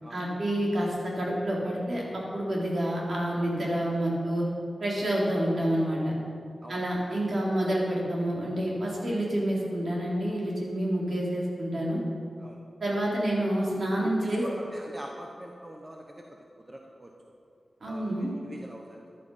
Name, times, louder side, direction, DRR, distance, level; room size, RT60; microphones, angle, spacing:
voice 1, 0.1-4.5 4.8-6.2 6.7-12.0 12.8-14.5 17.8-18.3, right 1 dB, 55° right, -4 dB, 3.8 m, -28 dB
voice 2, 6.6-7.1 12.4-12.6 14.0-16.2 16.6-17.1 17.8-19.0, right 1 dB, 20° right, 1 dB, 1.0 m, -44 dB
15.0 x 11.0 x 5.6 m, 2.5 s
wide cardioid pair, 130°, 0 cm